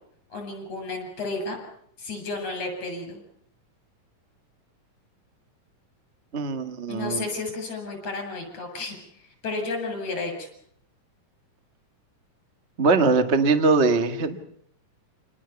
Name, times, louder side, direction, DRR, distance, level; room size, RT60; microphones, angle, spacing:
voice 1, 0.3-1.6 2.0-3.2 6.9-10.5, left 3 dB, 50° left, 4 dB, 8.4 m, -32 dB
voice 2, 6.3-7.2 12.8-14.4, right 4 dB, 40° right, 8 dB, 0.9 m, -21 dB
28.5 x 19.5 x 7.1 m, 0.69 s
omnidirectional pair, 3.9 m